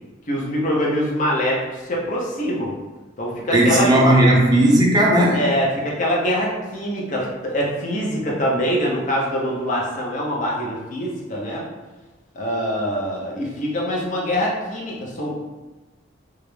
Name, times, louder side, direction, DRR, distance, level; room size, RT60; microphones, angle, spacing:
voice 1, 0.3-2.7 3.2-3.9 5.3-11.6 12.3-15.4, equal, 40° left, -4 dB, 0.5 m, -24 dB
voice 2, 3.5-5.5, right 1 dB, 20° right, -3 dB, 0.5 m, -15 dB
2.4 x 2.0 x 3.0 m, 1.2 s
head